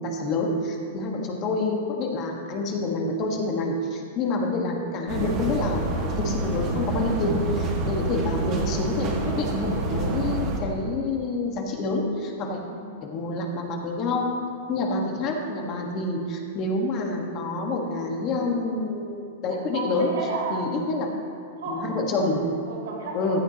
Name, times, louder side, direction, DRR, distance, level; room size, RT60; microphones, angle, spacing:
voice 1, 0.0-5.9 6.2-12.6 13.0-14.4 14.7-20.1 20.5-21.1 21.7-22.5 23.1-23.4, left 2 dB, 40° left, 1 dB, 1.6 m, -27 dB
sound 1, 5.1-10.6, right 2 dB, 35° right, 1.9 m, -27 dB
voice 2, 12.6-13.2 19.5-20.7 21.6-21.9 22.6-23.4, right 3 dB, 80° right, -4 dB, 3.0 m, -33 dB
15.0 x 10.0 x 3.0 m, 2.6 s
hypercardioid pair, 130°, 0 cm